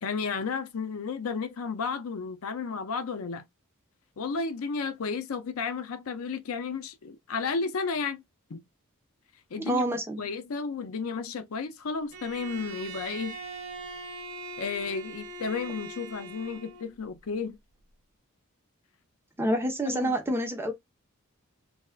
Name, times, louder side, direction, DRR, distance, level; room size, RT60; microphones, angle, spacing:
voice 1, 0.0-3.5 4.2-8.2 8.5-8.6 9.5-9.9 10.2-13.4 14.6-17.6 19.9-20.2, left 5 dB, 80° left, 0.5 m, -33 dB
voice 2, 9.7-10.2 19.4-20.7, right 1 dB, 10° right, 0.7 m, -27 dB
Bowed string instrument, 12.1-16.9, right 3 dB, 80° right, 0.7 m, -41 dB
3.3 x 2.4 x 2.2 m
head